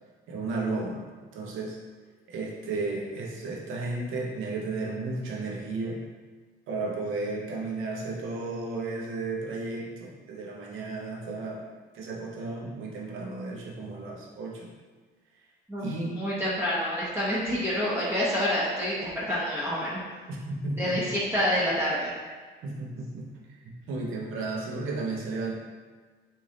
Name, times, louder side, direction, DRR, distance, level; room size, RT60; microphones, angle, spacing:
voice 1, 0.3-1.0 1.3-1.8 2.3-6.0 6.7-11.7 11.9-14.7 15.8-16.2 20.3-21.1 22.6-23.3 23.6-25.5, right 3 dB, 90° right, -2 dB, 0.8 m, -33 dB
voice 2, 16.1-20.0 20.8-22.1, equal, 10° right, -9 dB, 0.8 m, -27 dB
3.2 x 2.7 x 3.8 m, 1.5 s
cardioid pair, 90°, 20 cm